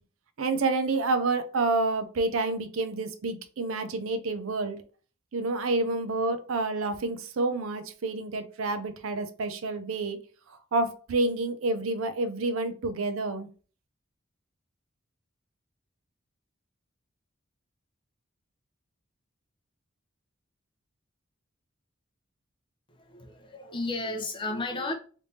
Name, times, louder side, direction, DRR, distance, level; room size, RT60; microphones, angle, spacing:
voice 1, 0.4-4.8 5.3-10.2 10.7-13.5, right 3 dB, 80° right, 0.5 m, -28 dB
voice 2, 22.9-24.9, left 2 dB, 25° left, 0.7 m, -33 dB
3.3 x 3.3 x 2.7 m
head